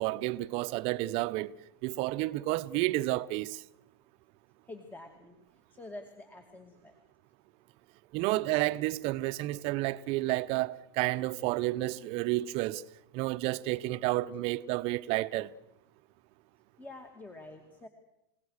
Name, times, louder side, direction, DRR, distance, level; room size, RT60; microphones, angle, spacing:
voice 1, 0.0-1.5 1.8-3.6 8.1-12.8 13.1-15.5, right 18 dB, 50° right, 0.9 m, -31 dB
voice 2, 4.7-5.3 5.8-6.9 16.8-17.9, left 2 dB, 15° left, 2.3 m, -47 dB
30.0 x 17.5 x 6.6 m
hypercardioid pair, 110°, 13 cm